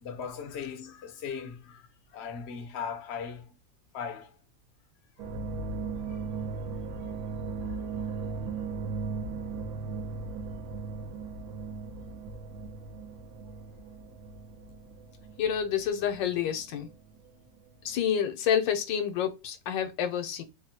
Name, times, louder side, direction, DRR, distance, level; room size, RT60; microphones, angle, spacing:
voice 1, 0.0-3.5 3.9-4.4 6.1-6.4 7.0-7.1 7.8-7.9 8.3-8.4, left 6 dB, 60° left, 0.7 m, -39 dB
sound 1, 5.2-17.3 17.6-18.0, right 4 dB, 65° right, 0.9 m, -37 dB
voice 2, 15.4-16.9 17.8-20.4, left 8 dB, 75° left, 1.3 m, -28 dB
3.4 x 2.2 x 2.7 m
omnidirectional pair, 2.0 m